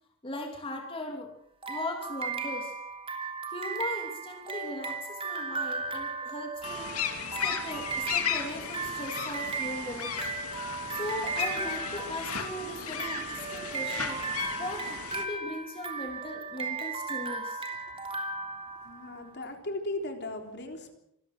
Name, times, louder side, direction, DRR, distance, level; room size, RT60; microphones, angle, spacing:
voice 1, 0.2-1.3 1.7-2.7 3.5-6.9 7.4-10.3 10.9-14.2 14.6-17.6, left 1 dB, 25° left, 2 dB, 2.9 m, -38 dB
sound 1, 1.6-19.3, right 4 dB, 25° right, 3.2 m, -36 dB
sound 2, 6.6-15.2, left 7 dB, 85° left, 2.8 m, -35 dB
voice 2, 18.8-20.9, left 2 dB, 50° left, 4 dB, 3.6 m, -37 dB
26.5 x 19.0 x 6.2 m, 0.77 s
head